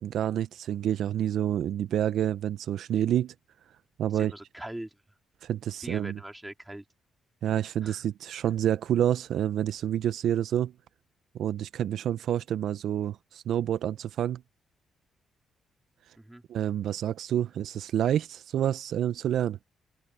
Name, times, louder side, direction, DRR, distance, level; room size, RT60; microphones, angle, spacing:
voice 1, 0.0-3.3 4.0-4.3 5.4-6.2 7.4-10.7 11.3-14.4 16.5-19.6, right 10 dB, 75° right, 0.7 m, -28 dB
voice 2, 4.1-4.9 5.8-6.8 7.5-8.0 16.1-16.4, right 1 dB, 10° right, 3.9 m, -42 dB
supercardioid pair, 50°, 0 cm